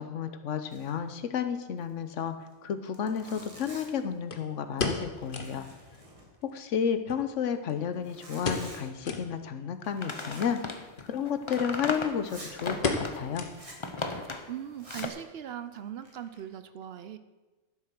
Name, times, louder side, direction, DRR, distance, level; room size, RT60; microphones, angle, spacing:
voice 1, 0.0-2.3 2.6-5.7 6.5-10.6 11.0-13.5, left 7 dB, 85° left, 9 dB, 1.2 m, -32 dB
Zipper (clothing), 0.7-1.1 1.3-1.4 1.8-1.9 2.5-2.6 2.9-4.1 4.6-4.9 5.2-6.6 7.9-8.9 10.1-10.6 10.9-11.0 11.5-11.6 12.2-12.6 13.5-13.9 14.7-15.2 15.8-16.4, right 1 dB, 25° right, 2.0 m, -49 dB
sound 1, 2.2-2.3 4.3-5.6 6.0-6.1 6.3-6.4 7.1-7.9 8.4-8.8 9.0-9.3 9.8-9.9 10.9-11.1 11.5-11.6 11.9-12.3 12.8-13.9 14.2-14.3 14.9-15.2 15.5-15.6, left 4 dB, 50° left, 1.2 m, -34 dB
sound 2, 9.8-13.2 13.7-14.5 14.9-15.1, left 3 dB, 30° left, 0.7 m, -36 dB
voice 2, 14.5-17.2, right 10 dB, 60° right, 11 dB, 0.8 m, -40 dB
12.0 x 7.2 x 6.0 m, 1.2 s
omnidirectional pair, 1.2 m